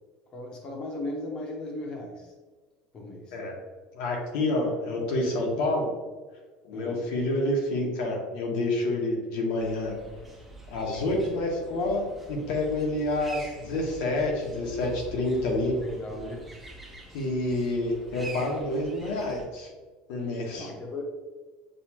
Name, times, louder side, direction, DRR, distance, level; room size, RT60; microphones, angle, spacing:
voice 1, 0.3-2.3 2.9-3.4 6.7-7.0 15.8-16.5 20.5-21.0, left 2 dB, 25° left, 1 dB, 0.9 m, -37 dB
voice 2, 3.9-5.9 6.6-9.9 10.7-15.7 17.1-19.7 20.1-20.7, left 2 dB, 60° left, 0 dB, 1.1 m, -28 dB
sound 1, 9.5-19.4, equal, 5° right, 0.6 m, -45 dB
6.7 x 2.4 x 2.9 m, 1.4 s
cardioid pair, 175°, 3 cm